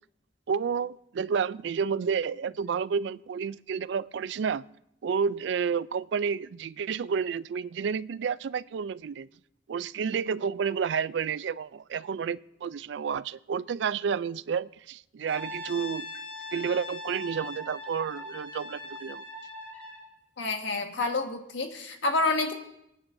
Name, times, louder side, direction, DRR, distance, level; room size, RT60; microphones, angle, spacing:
voice 1, 0.5-4.6 5.0-9.3 9.7-16.1 16.5-19.2, right 6 dB, 70° right, 18 dB, 0.3 m, -30 dB
Brass instrument, 15.2-20.1, left 2 dB, 10° left, 5.2 m, -40 dB
voice 2, 20.4-22.5, left 3 dB, 75° left, 4 dB, 1.6 m, -28 dB
25.5 x 9.9 x 2.6 m, 0.79 s
head